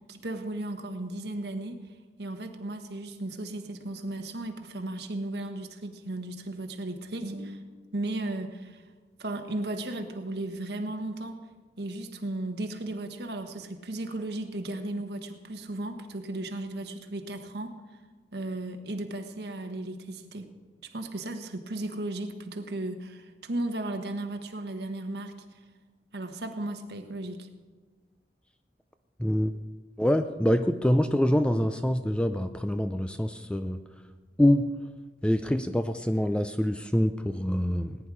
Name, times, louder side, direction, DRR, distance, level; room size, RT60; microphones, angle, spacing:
voice 1, 0.1-1.8 2.2-8.8 9.2-11.4 11.8-17.8 18.3-20.5 20.8-25.3 26.1-27.5, right 1 dB, 70° right, 6 dB, 1.3 m, -35 dB
voice 2, 29.2-29.5 30.0-33.8 34.4-34.8 35.2-38.0, equal, 5° left, 9 dB, 0.4 m, -25 dB
19.0 x 10.0 x 4.9 m, 1.4 s
head